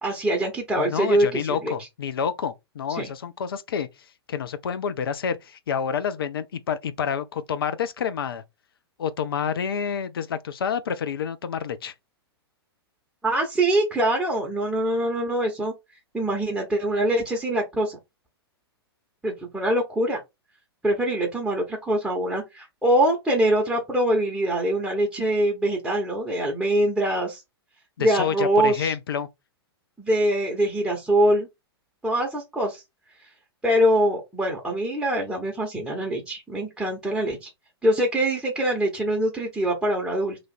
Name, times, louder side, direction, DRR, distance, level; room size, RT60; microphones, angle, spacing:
voice 1, 0.0-1.7 2.9-3.1 13.2-15.7 16.1-18.0 19.2-20.2 20.8-27.4 28.0-28.9 30.0-31.5 32.0-32.8 33.6-37.5 37.8-40.4, right 1 dB, 5° right, 1.0 m, -23 dB
voice 2, 0.7-3.9 4.3-8.4 9.0-11.9 28.0-29.3, left 7 dB, 60° left, 0.4 m, -28 dB
3.1 x 2.5 x 4.2 m
figure-of-eight pair, 105°, 14 cm